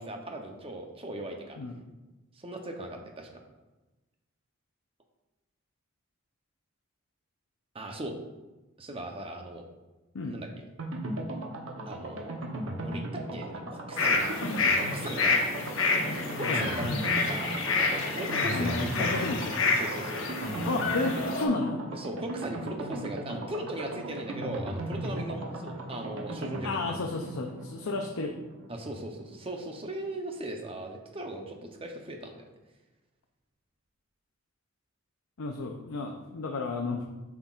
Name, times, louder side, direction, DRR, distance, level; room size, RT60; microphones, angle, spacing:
voice 1, 0.0-1.6 2.4-3.3 7.7-8.1 8.8-9.6 10.3-10.5 11.9-12.4 12.8-14.3 14.9-15.4 16.4-19.1 19.8-20.2 21.9-26.8 28.7-32.4, right 1 dB, 25° right, 3 dB, 0.7 m, -38 dB
sound 1, 10.8-29.4 29.7-29.8 30.0-30.1, right 1 dB, 65° right, 0.9 m, -37 dB
sound 2, 14.0-21.5, left 3 dB, 60° left, 1.0 m, -28 dB
voice 2, 18.5-19.8 20.6-21.8 26.6-28.3 35.4-37.1, left 3 dB, 80° left, 2 dB, 0.5 m, -32 dB
7.7 x 5.9 x 2.4 m, 1.1 s
head